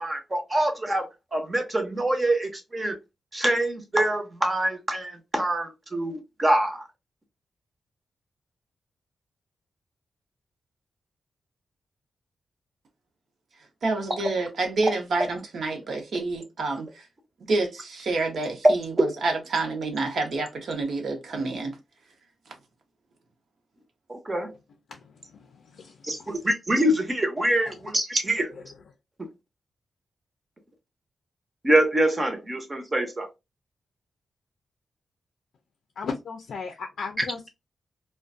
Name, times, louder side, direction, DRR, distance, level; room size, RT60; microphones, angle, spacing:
voice 1, 0.0-3.0 3.3-6.8 24.1-24.5 26.0-28.5 29.2-29.3 31.6-33.3 37.2-37.3, right 1 dB, 20° right, 0.6 m, -25 dB
voice 2, 13.8-17.0 17.5-21.8, right 3 dB, 65° right, 0.7 m, -28 dB
voice 3, 24.9-26.4 28.5-28.6 36.0-37.5, left 5 dB, 75° left, 0.4 m, -37 dB
2.4 x 2.2 x 2.4 m
wide cardioid pair, 160°, 0 cm